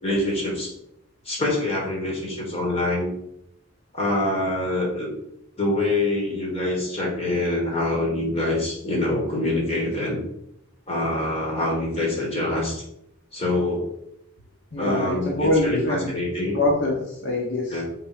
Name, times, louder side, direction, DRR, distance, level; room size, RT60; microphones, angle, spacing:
voice 1, 0.0-0.7 1.2-3.1 3.9-5.1 5.6-10.2 10.9-12.8 13.3-13.9 14.8-16.6 17.7-17.8, left 2 dB, 30° left, -2 dB, 3.7 m, -25 dB
voice 2, 14.7-16.1 16.5-17.8, left 2 dB, 65° left, -2 dB, 1.7 m, -24 dB
7.8 x 6.0 x 5.6 m, 0.78 s
head